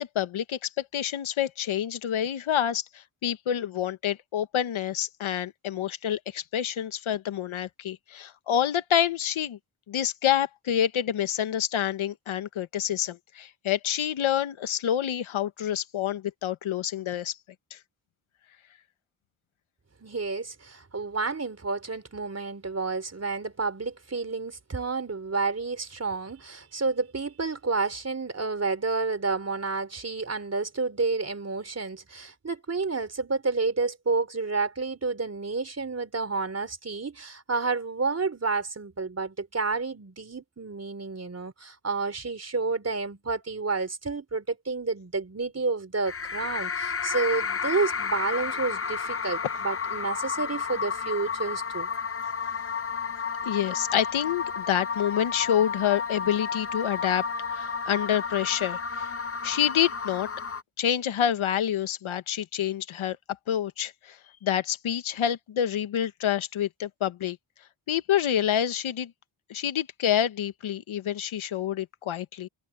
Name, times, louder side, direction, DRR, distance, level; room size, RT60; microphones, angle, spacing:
voice 1, 0.0-9.6 9.9-17.4 17.7-17.8 53.4-57.2 57.5-59.1 59.4-60.3 60.8-63.2 63.5-67.4 67.9-69.1 69.5-72.5, left 10 dB, 75° left, 1.4 m, -27 dB
voice 2, 20.0-51.9, right 4 dB, 30° right, 3.7 m, -30 dB
sound 1, 46.1-60.6, left 5 dB, 30° left, 0.8 m, -32 dB
cardioid pair, 85°, 48 cm